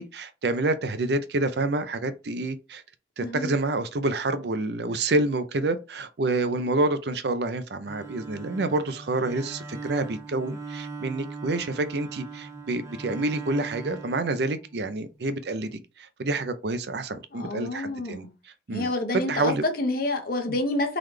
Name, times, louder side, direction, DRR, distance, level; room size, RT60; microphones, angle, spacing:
voice 1, 0.0-2.8 3.2-18.3 18.7-19.6, right 2 dB, 65° right, 0.5 m, -28 dB
voice 2, 3.2-3.5 17.3-18.3 18.7-21.0, left 2 dB, 55° left, 1.0 m, -28 dB
Bowed string instrument, 7.8-15.0, right 4 dB, 15° right, 0.8 m, -39 dB
3.9 x 3.2 x 3.2 m
head